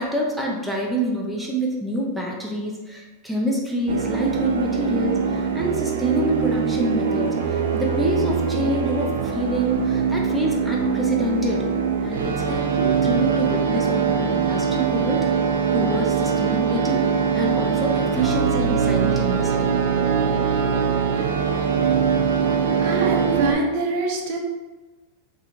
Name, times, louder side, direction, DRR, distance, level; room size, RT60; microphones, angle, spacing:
voice 1, 0.0-11.6 12.0-15.2 15.7-19.6, equal, ahead, -3 dB, 0.6 m, -27 dB
sound 1, 3.9-23.5, right 6 dB, 85° right, 0.4 m, -22 dB
voice 2, 22.8-24.4, right 3 dB, 60° right, 0 dB, 0.7 m, -24 dB
2.9 x 2.4 x 4.1 m, 1.2 s
supercardioid pair, 130°, 0 cm